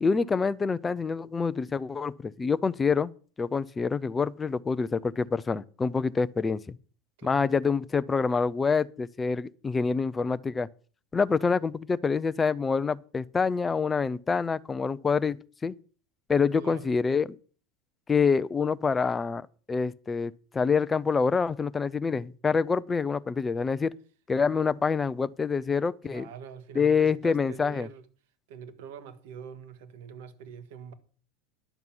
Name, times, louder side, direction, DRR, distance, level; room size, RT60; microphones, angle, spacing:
voice 1, 0.0-3.1 3.4-6.8 7.2-10.7 11.1-15.7 16.3-17.3 18.1-23.9 24.3-26.3 26.8-27.9, left 5 dB, 15° left, 0.4 m, -26 dB
voice 2, 7.2-7.6 16.6-16.9 26.0-28.0 28.5-30.9, right 7 dB, 75° right, 1.5 m, -44 dB
11.0 x 7.1 x 6.0 m
supercardioid pair, 155°, 0 cm